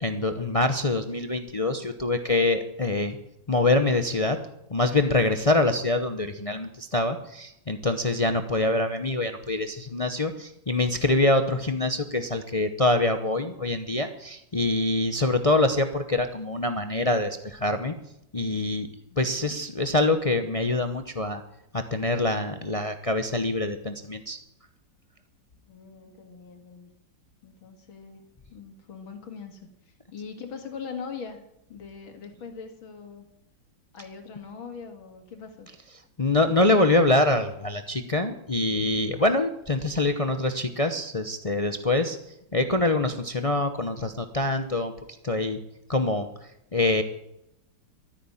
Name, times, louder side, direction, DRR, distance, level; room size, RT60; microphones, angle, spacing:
voice 1, 0.0-3.2 3.5-4.4 4.7-17.9 18.3-18.9 19.2-21.4 21.7-24.4 36.2-42.2 42.5-44.9 45.2-45.6 45.9-46.3 46.7-47.0, left 2 dB, 60° left, 8 dB, 0.3 m, -25 dB
voice 2, 19.1-19.6 25.7-26.9 27.4-28.2 28.5-31.4 31.7-33.3 33.9-35.7, left 6 dB, 80° left, 5 dB, 2.8 m, -41 dB
13.5 x 9.9 x 8.6 m, 0.82 s
omnidirectional pair, 2.2 m